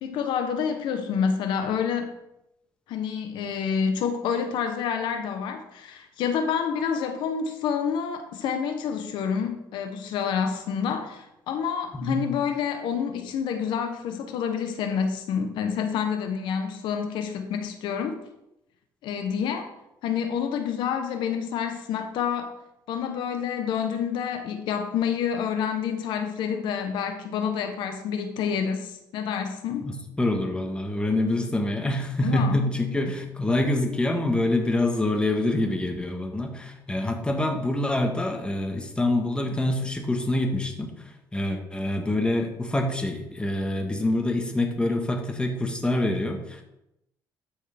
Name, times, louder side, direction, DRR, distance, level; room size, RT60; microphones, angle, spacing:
voice 1, 0.0-2.1 2.9-18.2 19.0-19.7 20.0-22.5 22.9-29.9 32.2-32.6, left 7 dB, 80° left, 1.0 m, -28 dB
voice 2, 29.8-40.9 41.3-46.6, left 1 dB, 10° left, 1.5 m, -26 dB
12.0 x 6.4 x 3.5 m
cardioid pair, 110°, 8 cm